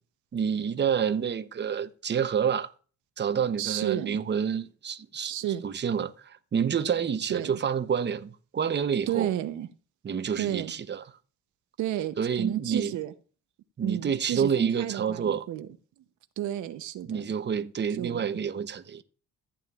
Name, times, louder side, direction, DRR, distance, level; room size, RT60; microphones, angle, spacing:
voice 1, 0.3-2.7 3.2-5.3 5.6-9.3 10.0-11.0 12.2-12.9 13.8-15.5 17.1-19.0, right 7 dB, 35° right, 0.9 m, -28 dB
voice 2, 3.6-4.2 5.2-5.6 7.3-7.6 9.1-9.7 10.4-10.7 11.8-13.1 13.8-15.7 16.4-17.3 17.9-18.2, right 12 dB, 80° right, 0.8 m, -32 dB
14.5 x 8.8 x 2.4 m
cardioid pair, 80°, 29 cm